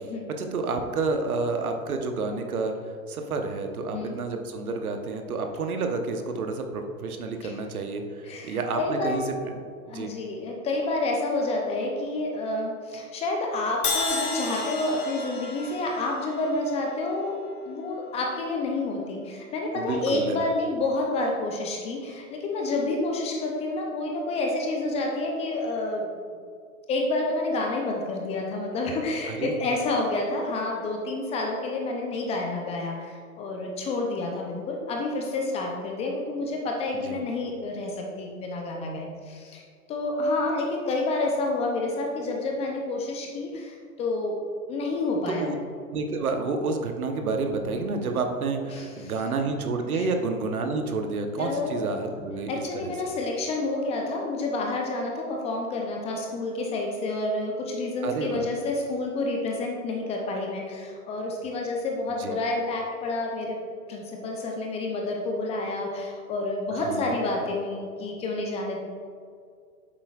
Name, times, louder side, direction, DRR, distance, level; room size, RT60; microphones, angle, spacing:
voice 1, 0.4-2.7 3.1-8.0 8.4-9.5 9.9-10.1 19.7-20.4 29.2-29.6 37.0-37.2 45.3-45.6 45.9-52.9 58.0-58.5 62.2-62.4 66.7-67.1, right 3 dB, 75° right, 5 dB, 1.0 m, -29 dB
voice 2, 8.2-9.3 9.9-26.1 26.9-39.6 39.9-44.4 44.7-45.5 48.7-49.1 49.9-50.1 51.3-51.8 52.1-63.6 63.9-68.8, left 2 dB, 15° left, 0 dB, 0.5 m, -29 dB
Crash cymbal, 13.8-17.9, left 4 dB, 90° left, 1.3 m, -33 dB
8.6 x 7.4 x 2.4 m, 2.2 s
hypercardioid pair, 115°, 44 cm